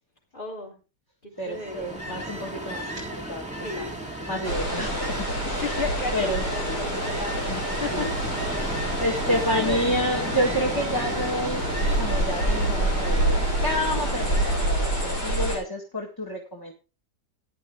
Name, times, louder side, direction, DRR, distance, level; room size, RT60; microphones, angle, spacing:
voice 1, 0.3-0.8 1.2-1.9 3.5-4.1 5.6-7.5 7.8-8.1 9.3-9.9, left 3 dB, 30° left, 2 dB, 3.8 m, -34 dB
voice 2, 1.4-3.4 3.8-3.9 4.3-5.8 6.1-7.0 7.5-7.6 7.9-8.1 8.5-8.7 9.0-11.6 12.0-16.7, equal, 15° left, 0 dB, 1.8 m, -29 dB
Ocean, 1.4-15.5, right 1 dB, 5° right, 2.3 m, -35 dB
sound 1, 4.4-15.6, right 1 dB, 75° left, 7.4 m, -27 dB
13.5 x 10.0 x 3.6 m, 0.30 s
omnidirectional pair, 1.8 m